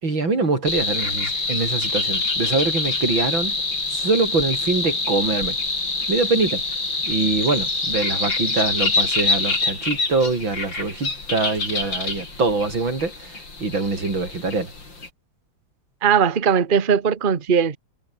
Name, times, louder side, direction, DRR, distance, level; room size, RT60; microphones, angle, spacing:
voice 1, 0.0-3.6 3.9-5.6 6.1-6.6 7.1-14.7, right 3 dB, 90° right, 5.7 m, -24 dB
sound 1, 0.7-15.1, left 3 dB, 70° left, 6.0 m, -25 dB
voice 2, 16.0-17.8, right 7 dB, 30° right, 1.2 m, -19 dB
omnidirectional pair, 2.1 m